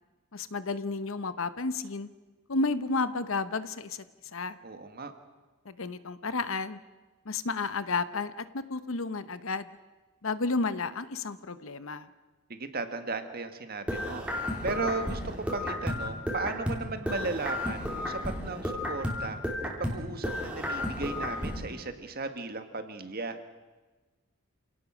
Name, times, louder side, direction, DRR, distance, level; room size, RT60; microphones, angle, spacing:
voice 1, 0.3-2.1 2.5-4.0 4.3-4.6 5.7-6.8 7.3-9.7 10.2-12.1, left 3 dB, 65° left, 13 dB, 0.9 m, -32 dB
voice 2, 4.6-5.1 12.5-14.2 14.6-19.5 19.8-23.4, right 3 dB, 45° right, 8 dB, 1.6 m, -36 dB
sound 1, 13.9-16.8 17.1-20.0 20.2-21.6, left 1 dB, 5° right, 3.2 m, -33 dB
27.5 x 17.5 x 6.2 m, 1.2 s
head